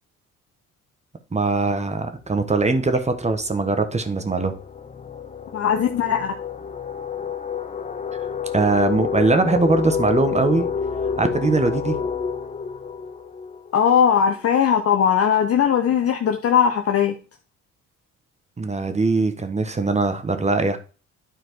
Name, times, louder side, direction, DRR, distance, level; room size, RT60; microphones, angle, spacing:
voice 1, 1.3-4.5 8.1-8.2 8.5-10.7 11.2-12.0 18.6-20.8, right 3 dB, 20° right, 1.2 m, -21 dB
sound 1, 2.3-2.5 2.8-14.4, left 6 dB, 25° left, 0.7 m, -29 dB
voice 2, 5.5-6.3 13.7-17.2, left 8 dB, 50° left, 0.9 m, -19 dB
9.8 x 4.4 x 4.6 m
cardioid pair, 90°, 30 cm